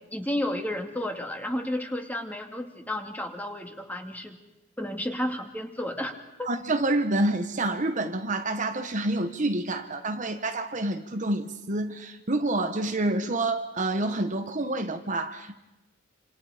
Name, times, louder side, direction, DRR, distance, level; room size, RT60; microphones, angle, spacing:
voice 1, 0.1-4.4 4.8-6.5, left 1 dB, 10° left, 4 dB, 2.3 m, -32 dB
voice 2, 6.4-15.6, right 2 dB, 40° right, 7 dB, 1.2 m, -28 dB
28.0 x 27.0 x 5.1 m, 1.0 s
head